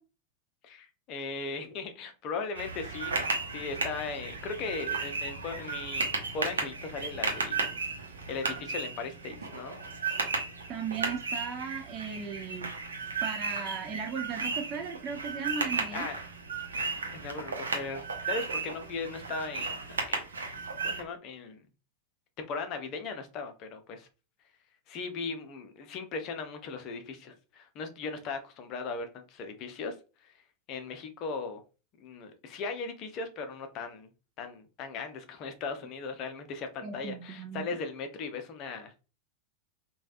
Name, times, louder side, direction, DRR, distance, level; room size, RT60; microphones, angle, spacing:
voice 1, 0.6-3.2 3.5-6.1 6.3-7.6 8.3-9.8 15.9-16.2 17.1-19.8 20.1-20.3 20.8-21.6 22.4-24.1 24.9-29.9 30.2-30.3 30.7-31.6 32.0-34.1 34.4-38.9, left 4 dB, 40° left, 0.6 m, -38 dB
sound 1, 2.5-21.0, right 4 dB, 70° right, 0.7 m, -34 dB
voice 2, 10.7-12.7 13.2-16.0 36.8-37.7, right 6 dB, 30° right, 0.4 m, -36 dB
3.2 x 2.2 x 2.4 m
figure-of-eight pair, 90°, 0 cm